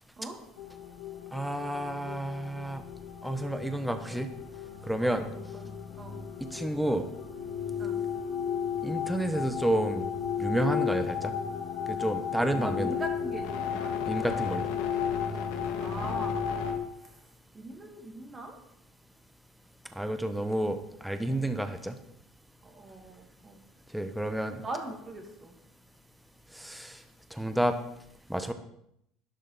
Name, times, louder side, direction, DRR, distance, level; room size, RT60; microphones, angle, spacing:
sound 1, 0.6-16.8, left 7 dB, 85° left, 2.2 m, -34 dB
voice 1, 1.3-2.8 3.2-4.3 4.9-5.3 6.4-7.1 8.8-10.1 10.4-11.3 12.0-12.9 14.1-14.7 19.9-22.0 23.9-24.6 26.5-27.0 27.3-27.8 28.3-28.5, right 1 dB, 5° right, 8 dB, 1.1 m, -30 dB
voice 2, 5.0-5.7 6.0-6.2 7.8-8.0 12.4-14.0 15.8-16.4 16.9-17.3 17.5-18.6 21.3-21.4 22.6-23.6 24.6-25.6, right 2 dB, 20° right, 2 dB, 2.7 m, -41 dB
12.0 x 11.5 x 4.2 m, 0.74 s
supercardioid pair, 120°, 0 cm